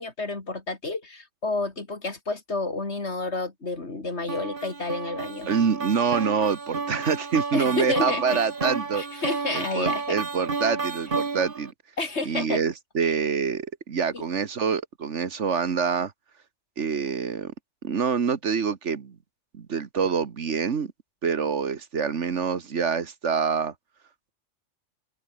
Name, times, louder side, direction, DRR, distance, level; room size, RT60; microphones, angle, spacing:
voice 1, 0.0-5.5 7.5-8.4 9.0-10.2 12.0-12.6 13.0-13.1 14.1-14.2, left 3 dB, 60° left, 3.5 m, -30 dB
sound 1, 4.3-11.7, right 4 dB, 45° right, 1.8 m, -31 dB
voice 2, 5.5-9.0 9.5-11.7 12.3-16.1 16.8-17.5 17.8-19.2 19.5-20.9 21.2-23.7, right 6 dB, 70° right, 1.7 m, -26 dB
open air
omnidirectional pair, 1.3 m